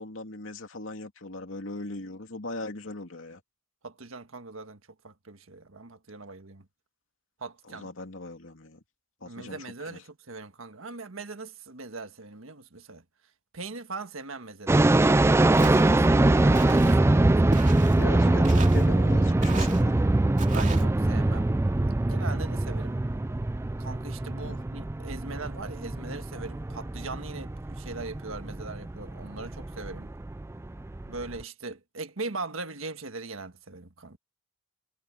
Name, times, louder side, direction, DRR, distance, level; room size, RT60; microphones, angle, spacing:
voice 1, 0.0-3.4 7.7-8.8 9.2-10.0 18.0-20.0 24.4-24.6, left 2 dB, 70° left, 2.6 m, -39 dB
voice 2, 3.8-4.8 5.0-6.6 7.4-7.9 9.2-13.0 13.5-14.9 15.6-18.1 20.4-21.5 22.1-23.0 23.8-30.1 31.1-34.2, right 3 dB, 85° right, 1.5 m, -40 dB
sound 1, 14.7-31.4, right 2 dB, 15° right, 0.3 m, -23 dB
Walk footsteps, 15.6-16.0 16.5-17.0 17.5-18.0 18.4-18.9 19.4-19.8 20.4-20.8, right 4 dB, 40° right, 2.5 m, -37 dB
head